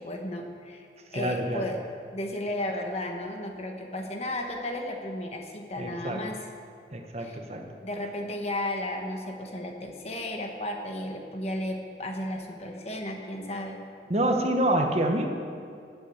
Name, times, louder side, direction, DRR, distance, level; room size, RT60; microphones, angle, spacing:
voice 1, 0.0-1.8 2.1-6.5 7.2-7.4 7.8-13.8, left 1 dB, 35° left, 3 dB, 1.4 m, -34 dB
voice 2, 1.1-1.6 5.8-6.2 6.9-7.6 14.1-15.3, right 1 dB, 35° right, 3 dB, 1.1 m, -27 dB
15.5 x 8.3 x 7.9 m, 2.3 s
head